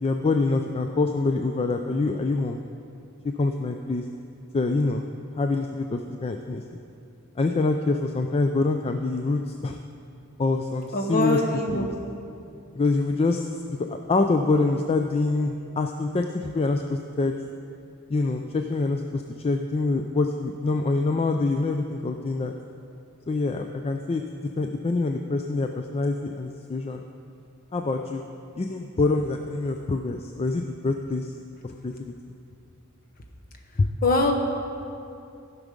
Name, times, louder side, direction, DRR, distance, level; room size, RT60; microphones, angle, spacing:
voice 1, 0.0-2.6 3.4-4.0 4.5-6.6 7.4-9.8 10.4-11.4 11.7-11.9 12.7-17.3 18.1-22.5 23.3-24.2 24.6-27.0 27.7-28.2 28.6-31.3 31.6-32.1 33.8-33.9, left 3 dB, 25° left, 5 dB, 0.4 m, -25 dB
voice 2, 10.9-11.8 34.0-34.3, left 1 dB, 45° left, 2 dB, 1.1 m, -23 dB
15.5 x 6.1 x 5.2 m, 2.6 s
head